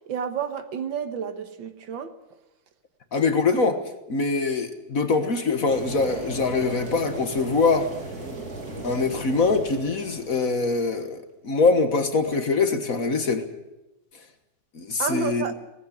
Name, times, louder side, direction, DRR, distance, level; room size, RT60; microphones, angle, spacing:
voice 1, 0.1-2.1 15.0-15.5, right 7 dB, 80° right, 2.0 m, -30 dB
voice 2, 3.1-3.8 4.1-7.9 8.8-13.5 14.7-15.5, left 4 dB, 50° left, 1.8 m, -23 dB
sound 1, 5.7-11.0, right 2 dB, 50° right, 3.5 m, -37 dB
18.5 x 15.5 x 10.0 m
omnidirectional pair, 2.0 m